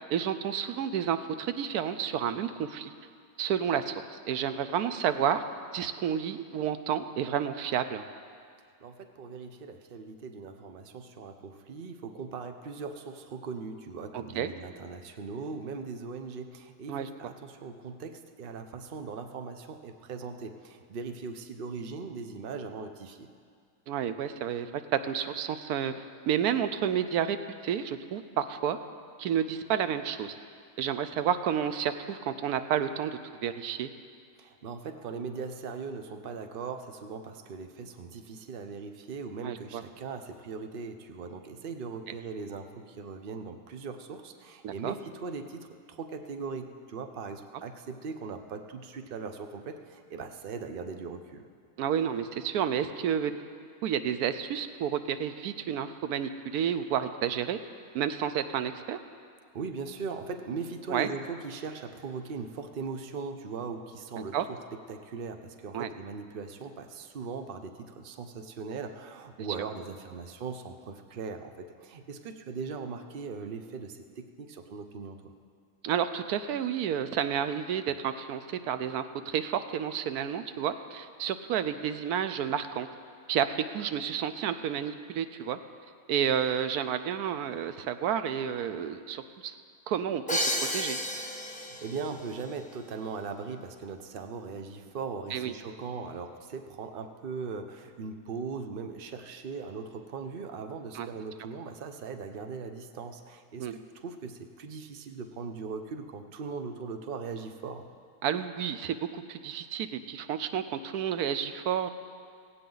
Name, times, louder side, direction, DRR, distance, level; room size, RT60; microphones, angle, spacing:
voice 1, 0.1-2.9 3.4-5.4 5.7-8.0 14.1-14.5 16.9-17.1 23.9-25.9 26.3-27.4 27.6-28.8 29.2-30.4 30.8-33.9 39.4-39.8 44.6-44.9 51.8-53.3 53.8-57.6 57.9-59.0 60.9-61.1 64.3-64.5 65.7-65.9 75.8-82.9 83.3-85.6 86.1-89.6 89.9-91.0 95.3-95.5 100.9-101.1 103.6-103.7 108.2-111.9, right 9 dB, 90° right, 10 dB, 1.2 m, -30 dB
voice 2, 8.8-23.3 34.4-51.4 59.5-64.6 64.9-75.3 91.5-107.9, right 5 dB, 45° right, 6 dB, 0.9 m, -39 dB
Crash cymbal, 90.3-92.1, equal, 5° left, 0.9 m, -31 dB
17.5 x 16.5 x 3.9 m, 2.2 s
omnidirectional pair, 1.6 m